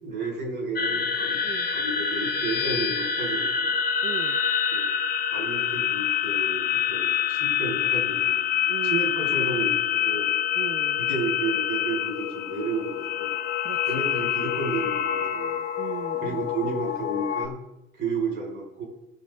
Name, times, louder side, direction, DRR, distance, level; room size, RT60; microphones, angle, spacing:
voice 1, 0.0-1.4 1.7-3.7 4.7-4.9 5.3-8.4 8.8-10.3 11.0-13.3 13.9-15.6 16.2-17.5 17.9-18.8, right 3 dB, 65° right, -1 dB, 4.9 m, -32 dB
sound 1, 0.7-17.5, left 9 dB, 50° left, 0.7 m, -26 dB
voice 2, 4.0-4.4 8.7-9.1 10.5-11.0 13.6-14.0 15.8-16.5, right 9 dB, 30° right, 8 dB, 0.4 m, -37 dB
18.5 x 6.9 x 3.6 m, 0.90 s
cardioid pair, 165°, 21 cm